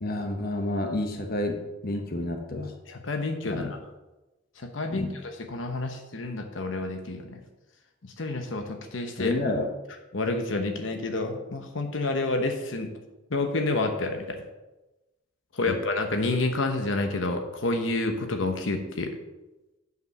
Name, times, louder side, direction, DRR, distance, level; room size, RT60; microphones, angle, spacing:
voice 1, 0.0-2.7 3.5-3.7 4.9-5.1 9.2-9.7 15.7-15.8, left 1 dB, 50° left, 4 dB, 1.0 m, -29 dB
voice 2, 2.9-3.8 4.6-7.4 8.0-9.3 10.1-12.9 13.3-14.4 15.5-19.1, left 2 dB, 75° left, 5 dB, 1.0 m, -29 dB
8.1 x 5.2 x 6.5 m, 1.0 s
head